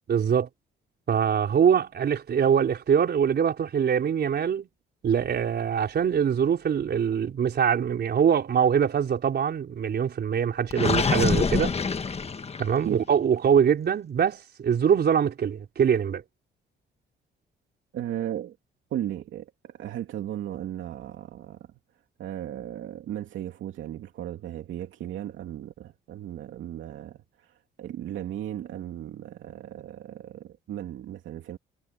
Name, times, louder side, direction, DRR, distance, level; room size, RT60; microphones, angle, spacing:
voice 1, 0.1-0.5 1.1-4.7 5.0-11.8 12.6-16.2, right 8 dB, 55° right, 4.1 m, -23 dB
Gurgling, 10.7-12.9, left 5 dB, 30° left, 1.4 m, -25 dB
voice 2, 17.9-18.6 18.9-21.6 22.2-27.2 27.8-31.6, right 11 dB, 75° right, 2.6 m, -36 dB
cardioid pair, 90°, 20 cm